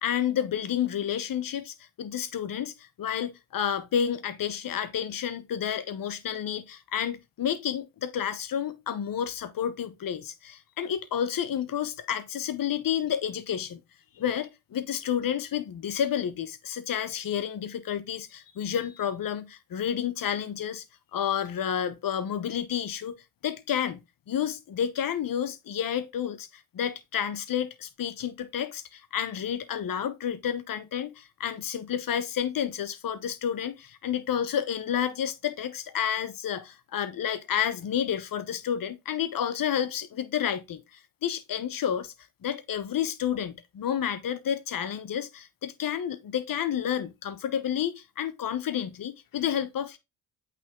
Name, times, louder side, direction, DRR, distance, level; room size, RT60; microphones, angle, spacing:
voice 1, 0.0-13.8 14.2-20.8 21.1-23.1 23.4-26.5 26.7-40.8 41.2-42.1 42.4-50.0, left 9 dB, 50° left, 1.0 m, -30 dB
8.4 x 3.5 x 3.7 m
hypercardioid pair, 45°, 43 cm